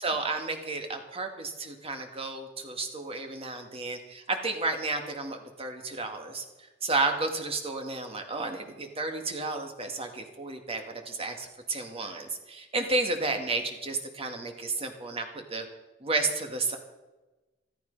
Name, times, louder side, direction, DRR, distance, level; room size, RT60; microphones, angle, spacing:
voice 1, 0.0-6.4 6.8-15.3 15.5-15.6 16.0-16.8, right 3 dB, 30° right, 4 dB, 2.1 m, -32 dB
14.5 x 14.0 x 5.5 m, 1.1 s
head